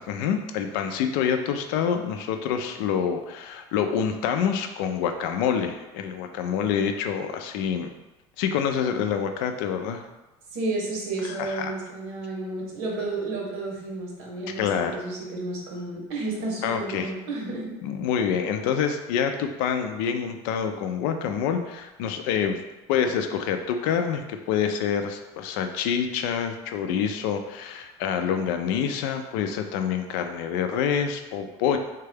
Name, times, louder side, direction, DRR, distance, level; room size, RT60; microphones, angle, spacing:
voice 1, 0.1-7.9 8.4-10.0 11.4-11.7 14.6-14.9 16.6-17.1 17.8-22.6 22.9-31.8, left 7 dB, 85° left, 6 dB, 0.4 m, -26 dB
voice 2, 10.5-17.7, right 2 dB, 65° right, -2 dB, 1.1 m, -31 dB
3.6 x 2.2 x 3.4 m, 1.0 s
cardioid pair, 165°, 11 cm